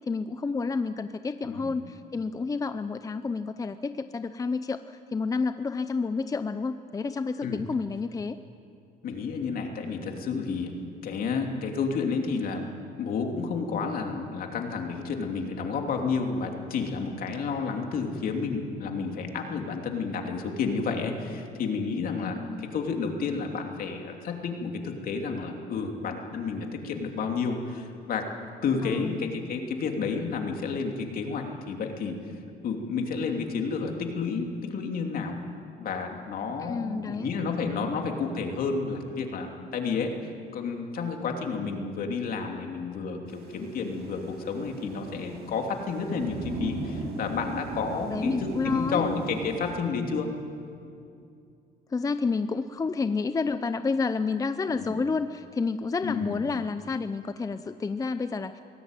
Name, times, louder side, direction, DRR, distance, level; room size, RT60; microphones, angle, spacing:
voice 1, 0.1-8.4 22.4-22.7 28.8-29.3 36.6-37.3 47.9-49.0 51.9-58.6, left 4 dB, 20° left, 11 dB, 0.6 m, -30 dB
voice 2, 9.0-10.7 11.0-12.6 13.0-28.3 28.6-32.1 32.6-35.4 35.8-50.3 54.7-55.0 56.0-56.4, left 5 dB, 60° left, 3 dB, 3.0 m, -31 dB
Thunder / Rain, 43.3-49.7, right 3 dB, 70° right, 5.9 m, -38 dB
23.0 x 17.0 x 9.2 m, 2.5 s
cardioid pair, 110°, 17 cm